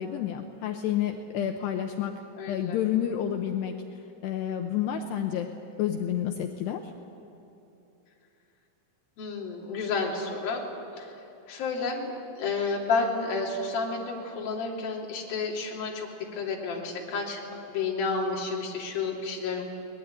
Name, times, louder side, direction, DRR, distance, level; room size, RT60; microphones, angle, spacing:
voice 1, 0.0-2.1 2.5-3.8 4.2-5.5 5.8-6.9, left 10 dB, 75° left, 4 dB, 2.7 m, -29 dB
voice 2, 2.4-2.8 9.2-10.6 11.0-11.1 11.5-17.4 17.7-19.6, left 4 dB, 50° left, -2 dB, 4.5 m, -31 dB
23.5 x 20.5 x 9.4 m, 2.8 s
omnidirectional pair, 5.6 m